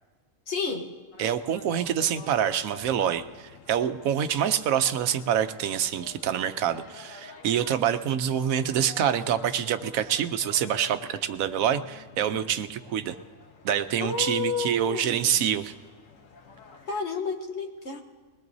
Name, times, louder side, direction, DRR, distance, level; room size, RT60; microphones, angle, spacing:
voice 1, 0.5-0.9 14.0-15.5 16.9-18.0, left 4 dB, 55° left, 4 dB, 1.4 m, -31 dB
sound 1, 1.1-16.9, left 4 dB, 75° left, 1.4 m, -49 dB
voice 2, 1.2-13.2 13.6-15.7, right 9 dB, 85° right, 11 dB, 1.1 m, -26 dB
21.5 x 20.0 x 2.7 m, 1.4 s
omnidirectional pair, 1.4 m